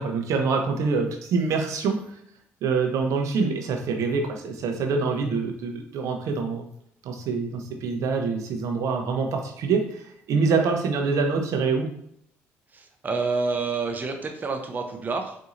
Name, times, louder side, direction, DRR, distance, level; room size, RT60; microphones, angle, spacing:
voice 1, 0.0-2.2 2.6-6.7 7.0-11.9, right 4 dB, 65° right, 3 dB, 0.7 m, -25 dB
voice 2, 12.7-15.4, right 4 dB, 30° right, 3 dB, 0.6 m, -28 dB
4.1 x 2.7 x 2.5 m, 0.70 s
supercardioid pair, 65°, 6 cm